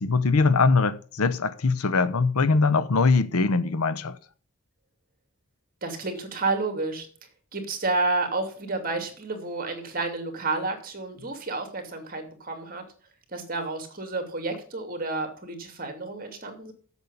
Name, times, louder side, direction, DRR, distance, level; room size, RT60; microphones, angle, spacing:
voice 1, 0.0-4.1, left 4 dB, 80° left, 0.8 m, -22 dB
voice 2, 5.8-7.1 7.5-12.8 13.3-16.7, right 3 dB, 40° right, 2.6 m, -30 dB
8.1 x 7.2 x 8.3 m
head